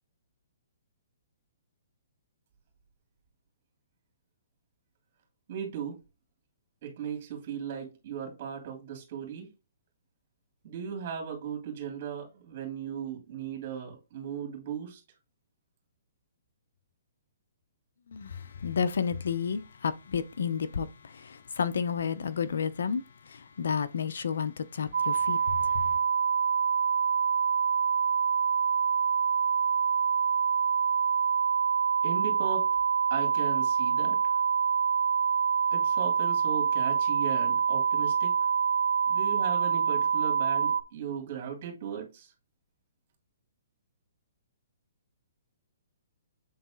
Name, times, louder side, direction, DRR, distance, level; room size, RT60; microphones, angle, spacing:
voice 1, 5.5-6.0 6.8-9.5 10.6-15.0 32.0-32.7 33.1-34.4 35.7-38.4 39.1-42.3, right 8 dB, 45° right, 2.9 m, -37 dB
voice 2, 18.1-25.9, left 6 dB, 75° left, 0.8 m, -31 dB
sound 1, 24.9-40.8, right 7 dB, 80° right, 0.7 m, -26 dB
7.9 x 4.0 x 3.9 m
hypercardioid pair, 150°, 0 cm